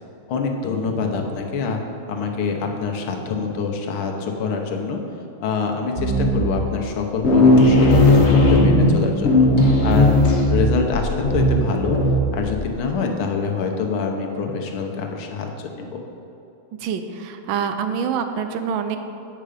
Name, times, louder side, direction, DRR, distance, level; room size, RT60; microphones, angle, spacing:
voice 1, 0.3-1.8 2.1-5.0 5.4-9.5 9.8-12.0 12.3-15.5 15.8-15.9, left 4 dB, 80° left, 2 dB, 1.8 m, -25 dB
sound 1, 6.0-6.6 6.9-7.0 7.2-12.6, left 1 dB, 40° left, 1.1 m, -16 dB
voice 2, 16.8-19.0, right 7 dB, 80° right, 8 dB, 1.4 m, -26 dB
8.9 x 6.7 x 5.0 m, 2.8 s
omnidirectional pair, 2.3 m